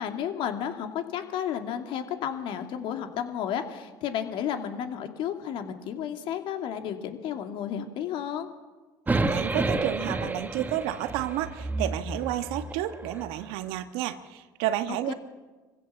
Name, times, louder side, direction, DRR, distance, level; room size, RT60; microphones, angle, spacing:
voice 1, 0.0-8.5 15.1-15.2, left 9 dB, 65° left, 6 dB, 2.6 m, -32 dB
sound 1, 9.1-13.3, right 2 dB, 20° right, 1.7 m, -30 dB
voice 2, 9.3-15.1, right 13 dB, 75° right, 10 dB, 1.5 m, -31 dB
24.0 x 16.0 x 7.3 m, 1.3 s
supercardioid pair, 80°, 9 cm